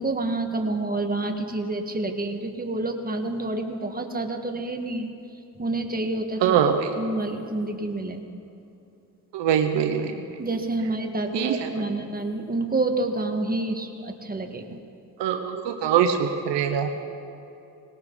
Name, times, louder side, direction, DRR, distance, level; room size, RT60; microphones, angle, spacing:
voice 1, 0.0-5.1 5.6-6.6 7.0-8.2 10.4-14.8, right 2 dB, 20° right, 4 dB, 1.8 m, -28 dB
voice 2, 6.4-6.9 9.3-10.2 11.3-11.7 15.2-16.9, right 8 dB, 85° right, 6 dB, 1.1 m, -23 dB
20.0 x 18.0 x 4.1 m, 2.7 s
supercardioid pair, 65°, 41 cm